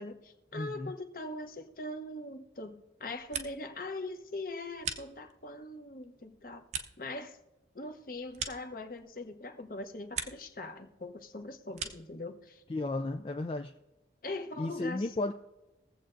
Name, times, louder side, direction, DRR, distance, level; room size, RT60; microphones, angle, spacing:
voice 1, 0.0-6.6 7.0-7.4 7.7-12.6 14.2-15.1, left 2 dB, 50° left, 1.0 m, -41 dB
voice 2, 0.5-0.9 12.7-13.7 14.6-15.3, left 2 dB, 30° left, 0.4 m, -34 dB
sound 1, 3.0-3.8 4.1-5.6 6.0-9.3 9.6-10.6 10.9-12.2, right 6 dB, 40° right, 0.7 m, -42 dB
22.0 x 7.7 x 2.6 m
head